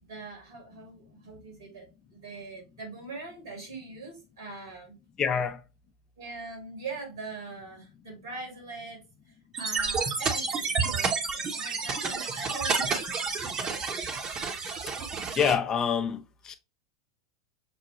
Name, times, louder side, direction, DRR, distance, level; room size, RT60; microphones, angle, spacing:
voice 1, 0.0-4.9 6.2-13.2 14.6-14.7 15.1-15.2, right 3 dB, 75° right, 1.9 m, -42 dB
voice 2, 5.2-5.6 15.4-16.6, left 7 dB, 30° left, 0.5 m, -26 dB
sound 1, 9.5-15.6, right 4 dB, 30° right, 0.9 m, -30 dB
6.0 x 2.2 x 3.0 m
hypercardioid pair, 90°, 2 cm